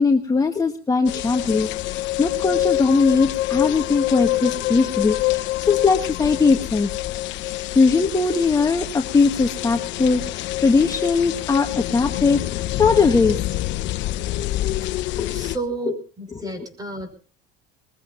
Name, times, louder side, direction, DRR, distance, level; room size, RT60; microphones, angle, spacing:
voice 1, 0.0-6.9 7.7-13.4 15.2-15.5 16.4-16.5, left 4 dB, 15° left, 4 dB, 1.3 m, -20 dB
sound 1, 1.1-15.6, left 16 dB, 60° left, 1.0 m, -26 dB
voice 2, 15.3-17.1, right 2 dB, 15° right, 7 dB, 6.0 m, -31 dB
22.5 x 20.5 x 2.6 m, 0.41 s
supercardioid pair, 110°, 21 cm